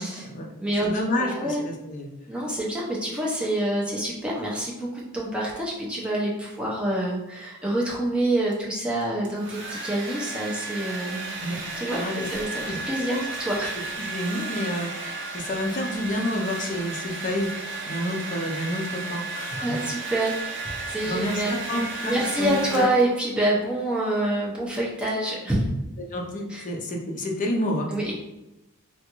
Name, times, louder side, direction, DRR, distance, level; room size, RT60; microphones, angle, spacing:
voice 1, 0.0-0.5 0.8-2.1 11.4-11.5 11.9-12.3 12.6-13.3 13.5-17.5 17.9-19.8 21.1-22.6 26.1-27.9, left 1 dB, 35° left, 1 dB, 0.5 m, -29 dB
voice 2, 0.6-0.9 1.2-1.7 2.3-11.4 11.8-12.0 12.3-13.9 19.6-20.3 20.8-21.6 22.0-25.7 26.5-26.6 27.9-28.2, right 1 dB, 5° right, -5 dB, 0.6 m, -27 dB
Domestic sounds home sounds, 9.0-23.3, right 3 dB, 50° right, 0.6 m, -34 dB
3.5 x 2.4 x 2.9 m, 0.94 s
head